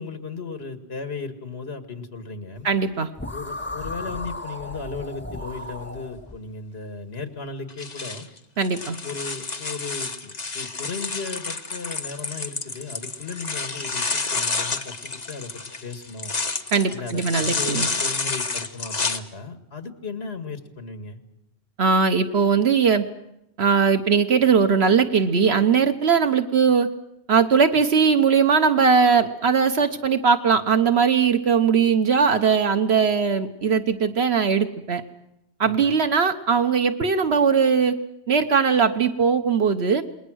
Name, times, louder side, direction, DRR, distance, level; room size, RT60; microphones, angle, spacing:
voice 1, 0.0-2.7 3.3-8.3 9.0-15.5 15.8-16.3 16.9-21.2 35.6-36.0, left 4 dB, 70° left, 8 dB, 2.1 m, -36 dB
voice 2, 2.6-3.1 8.6-9.0 16.7-17.9 21.8-23.0 23.6-26.9 27.3-35.0 35.6-38.0 38.3-40.0, right 6 dB, 70° right, 8 dB, 1.3 m, -20 dB
sound 1, 3.2-6.4, left 2 dB, 10° left, 0.9 m, -35 dB
sound 2, 7.7-19.2, left 3 dB, 40° left, 1.3 m, -29 dB
27.5 x 21.5 x 6.3 m, 0.82 s
omnidirectional pair, 1.1 m